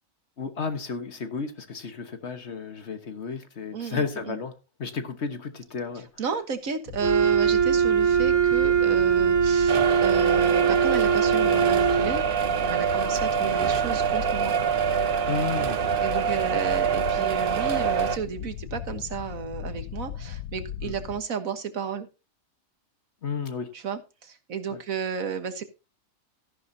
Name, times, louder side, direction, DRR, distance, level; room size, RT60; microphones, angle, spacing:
voice 1, 0.4-6.1 12.8-12.9 15.3-15.8 16.6-16.7 20.8-20.9 23.2-23.7 24.7-24.8, left 5 dB, 55° left, 1.5 m, -33 dB
voice 2, 3.7-4.4 6.2-12.2 12.6-14.5 16.0-22.1 23.7-25.6, right 6 dB, 75° right, 1.7 m, -33 dB
sound 1, 6.9-21.2, left 9 dB, 85° left, 1.2 m, -37 dB
Wind instrument woodwind instrument, 7.0-12.1, right 7 dB, 10° right, 3.0 m, -21 dB
sound 2, 9.7-18.2, right 7 dB, 45° right, 1.0 m, -25 dB
14.0 x 10.5 x 2.8 m
omnidirectional pair, 1.4 m